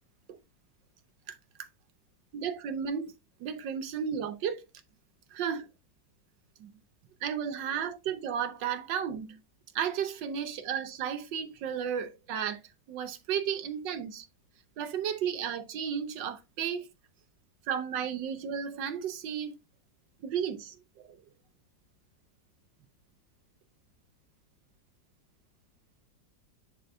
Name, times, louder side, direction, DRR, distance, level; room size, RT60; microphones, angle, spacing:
voice 1, 2.3-4.6 5.3-5.7 6.6-6.7 7.2-9.4 9.7-12.6 12.9-14.3 14.8-16.9 17.7-19.5 20.2-21.2, right 8 dB, 75° right, 1.6 m, -33 dB
10.0 x 3.8 x 2.7 m
omnidirectional pair, 2.0 m